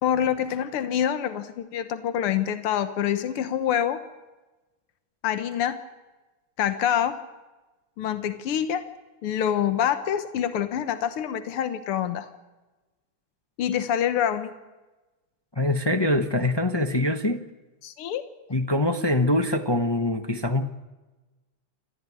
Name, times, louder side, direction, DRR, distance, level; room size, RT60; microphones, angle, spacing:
voice 1, 0.0-4.0 5.2-5.8 6.6-7.2 8.0-8.8 9.2-12.3 13.6-14.5 17.8-18.2, left 9 dB, 85° left, 11 dB, 2.0 m, -26 dB
voice 2, 15.6-17.4 18.5-20.7, left 1 dB, 25° left, 6 dB, 0.5 m, -24 dB
27.0 x 14.5 x 9.8 m, 1.2 s
omnidirectional pair, 2.4 m